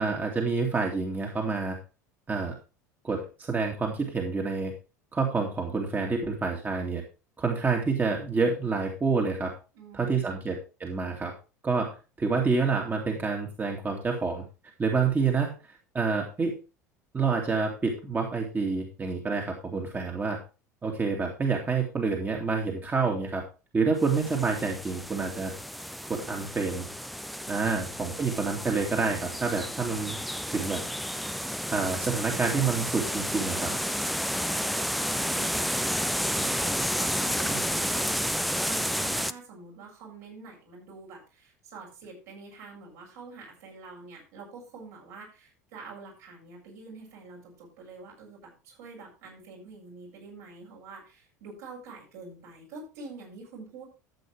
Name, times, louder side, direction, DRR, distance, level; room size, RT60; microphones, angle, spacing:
voice 1, 0.0-1.8 2.3-2.6 3.0-4.7 5.1-7.0 7.4-9.5 9.9-11.3 11.6-11.9 12.2-14.4 14.8-15.5 15.9-16.6 17.1-20.4 20.8-23.4 23.7-25.5 26.1-26.9 27.5-30.2 30.5-30.8 31.7-33.7 36.4-36.5 37.5-37.6, right 4 dB, 20° right, 1 dB, 2.5 m, -28 dB
voice 2, 9.7-10.5 27.6-27.9 35.0-35.8 36.4-38.4 38.7-53.8, right 4 dB, 60° right, -2 dB, 7.4 m, -46 dB
sound 1, 24.0-39.3, equal, ahead, 0.6 m, -31 dB
13.5 x 8.5 x 3.4 m, 0.30 s
figure-of-eight pair, 75°, 9 cm